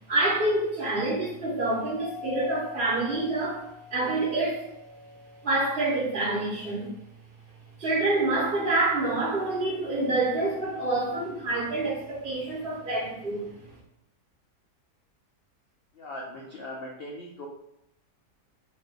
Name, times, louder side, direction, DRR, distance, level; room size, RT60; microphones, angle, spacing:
voice 1, 0.1-3.6 3.9-4.7 5.4-6.9 7.8-13.7, right 2 dB, 40° right, -8 dB, 1.4 m, -27 dB
Doorbell, 1.9-6.7, left 7 dB, 55° right, 0.7 m, -45 dB
voice 2, 15.9-17.5, left 1 dB, 90° left, -1 dB, 0.5 m, -39 dB
3.1 x 2.6 x 3.6 m, 0.78 s
omnidirectional pair, 1.7 m